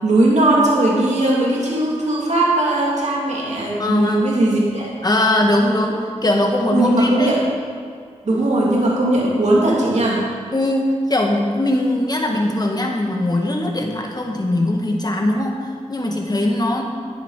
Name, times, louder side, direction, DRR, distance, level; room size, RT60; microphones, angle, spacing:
voice 1, 0.0-4.9 6.7-7.4 8.2-10.3, right 1 dB, 65° right, -4 dB, 2.6 m, -18 dB
voice 2, 3.8-4.2 5.0-7.3 10.5-16.8, left 1 dB, 30° left, 0 dB, 1.9 m, -20 dB
10.5 x 10.0 x 4.9 m, 2.1 s
cardioid pair, 55°, 13 cm